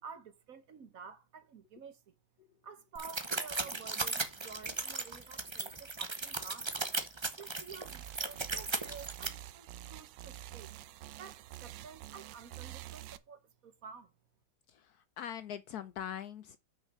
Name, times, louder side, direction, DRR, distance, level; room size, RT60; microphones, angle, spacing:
voice 1, 0.0-2.1 2.6-6.7 7.3-10.7 11.2-14.1, right 6 dB, 55° right, 1.3 m, -51 dB
sound 1, 3.0-9.3, right 3 dB, 30° right, 0.5 m, -37 dB
sound 2, 7.8-13.2, right 14 dB, 80° right, 1.3 m, -48 dB
voice 2, 14.7-16.6, left 9 dB, 70° left, 1.0 m, -42 dB
6.1 x 5.6 x 6.4 m
omnidirectional pair, 2.0 m